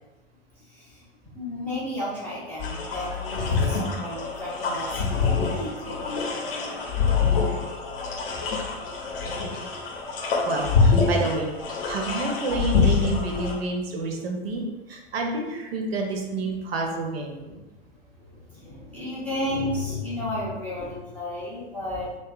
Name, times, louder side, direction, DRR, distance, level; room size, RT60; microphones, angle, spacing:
voice 1, 1.4-6.9 11.7-11.8 18.5-22.1, left 1 dB, 5° left, -10 dB, 0.3 m, -33 dB
sound 1, 2.6-13.6, left 5 dB, 55° left, 0.6 m, -25 dB
voice 2, 10.5-11.5 11.8-14.6 14.9-17.5, right 3 dB, 60° right, 2 dB, 0.6 m, -29 dB
2.5 x 2.3 x 2.3 m, 1.1 s
figure-of-eight pair, 105°, 34 cm